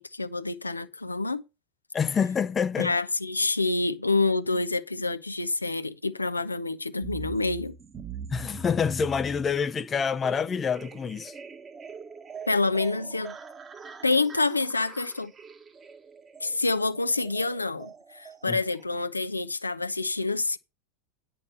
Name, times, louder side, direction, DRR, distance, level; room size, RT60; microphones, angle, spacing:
voice 1, 0.0-1.4 2.8-7.8 12.5-13.4 14.0-15.3 16.4-20.6, left 3 dB, 85° left, 0.8 m, -27 dB
voice 2, 1.9-2.9 8.3-11.3 18.5-18.6, left 6 dB, 25° left, 0.6 m, -27 dB
sound 1, 7.0-18.8, right 4 dB, 25° right, 1.4 m, -43 dB
9.9 x 5.8 x 6.3 m
figure-of-eight pair, 85°, 0 cm